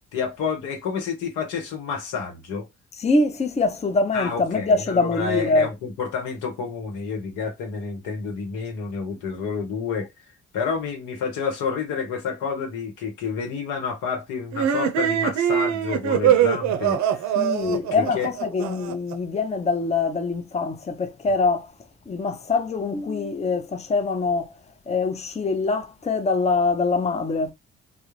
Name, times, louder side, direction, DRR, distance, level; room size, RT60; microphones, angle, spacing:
voice 1, 0.1-2.7 4.1-10.1 10.5-17.3 17.6-18.3, left 5 dB, 80° left, 0.9 m, -29 dB
voice 2, 3.0-5.7 17.4-21.7 22.1-24.5 24.9-27.5, left 3 dB, 20° left, 0.6 m, -24 dB
sound 1, 14.5-19.1, right 9 dB, 65° right, 0.5 m, -22 dB
2.3 x 2.0 x 3.0 m
hypercardioid pair, 50°, 30 cm